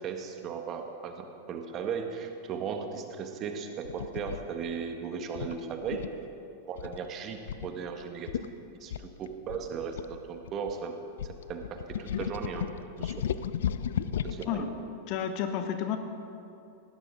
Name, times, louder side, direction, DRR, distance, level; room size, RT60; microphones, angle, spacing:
voice 1, 0.0-6.1 6.7-8.3 8.8-10.9 11.5-12.7 13.0-13.3 14.2-14.6, right 6 dB, 30° right, 5 dB, 1.5 m, -36 dB
sound 1, 3.8-4.4 5.4-6.2 6.8-7.1 7.5-7.7 8.0-8.1 8.3-8.5 8.9-10.7 11.2-14.5, left 9 dB, 60° left, 0.5 m, -34 dB
voice 2, 15.1-16.0, left 9 dB, 40° left, 7 dB, 1.1 m, -31 dB
19.5 x 16.5 x 3.8 m, 2.7 s
figure-of-eight pair, 90°, 0 cm